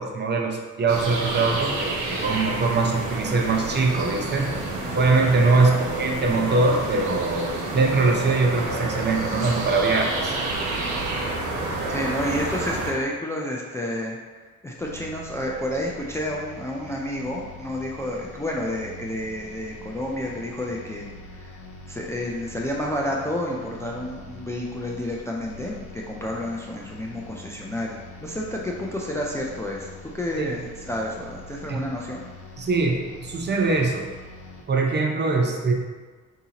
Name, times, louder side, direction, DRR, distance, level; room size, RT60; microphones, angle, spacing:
voice 1, 0.0-4.5 4.9-7.5 7.7-10.3 30.4-30.5 31.7-31.9 32.6-34.0 34.7-35.7, right 3 dB, 35° right, 1 dB, 0.6 m, -22 dB
sound 1, 0.9-12.9, right 2 dB, 85° right, 0.8 m, -29 dB
Singing, 1.2-11.6, equal, 35° left, 0.8 m, -43 dB
voice 2, 11.9-14.2 14.6-21.6 21.9-32.2, left 1 dB, 10° left, -2 dB, 0.4 m, -30 dB
sound 2, 14.8-34.6, left 2 dB, 80° left, 0.8 m, -44 dB
4.6 x 2.8 x 2.8 m, 1.4 s
cardioid pair, 90°, 30 cm